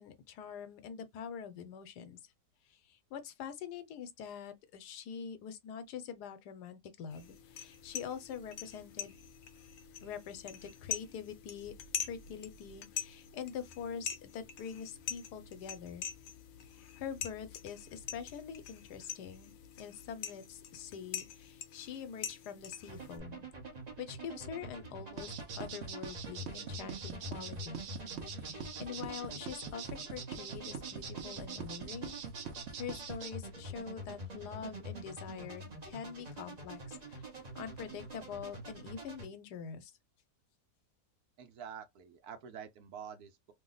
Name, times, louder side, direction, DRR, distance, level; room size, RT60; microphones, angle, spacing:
voice 1, 0.0-2.2 2.7-9.2 10.0-11.7 12.0-16.0 16.7-23.5 24.0-27.8 28.4-32.2 32.7-37.2 37.5-39.9, left 7 dB, 85° left, 1.2 m, -45 dB
sound 1, 7.1-23.2, left 8 dB, 65° left, 0.9 m, -44 dB
sound 2, 22.9-39.3, right 1 dB, 35° right, 0.7 m, -46 dB
sound 3, 25.2-33.3, right 7 dB, 60° right, 0.8 m, -43 dB
voice 2, 41.4-43.5, right 7 dB, 75° right, 1.2 m, -47 dB
3.1 x 2.1 x 3.8 m
omnidirectional pair, 1.7 m